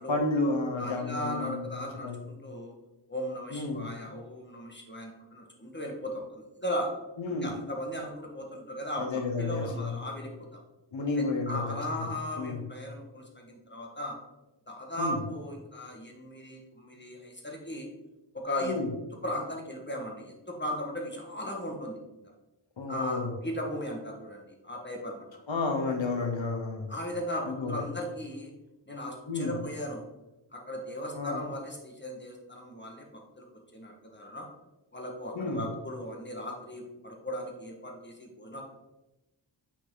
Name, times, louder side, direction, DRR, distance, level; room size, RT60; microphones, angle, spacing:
voice 1, 0.1-1.7 2.0-2.2 3.5-3.9 7.2-7.6 9.0-10.0 10.9-12.1 12.4-12.7 15.0-15.2 18.6-18.9 22.8-23.3 25.5-26.9 27.4-27.9 29.3-29.6 31.1-31.5 35.3-35.7, left 3 dB, 85° left, 4 dB, 1.1 m, -31 dB
voice 2, 0.8-2.7 3.1-6.9 7.4-10.6 11.2-14.2 14.7-17.9 18.3-18.8 19.2-22.3 22.9-25.3 26.9-28.5 28.9-30.0 30.5-33.5 33.7-34.5 34.9-38.6, equal, 25° left, 0 dB, 1.9 m, -37 dB
8.3 x 6.3 x 4.0 m, 1.0 s
wide cardioid pair, 65°, 45 cm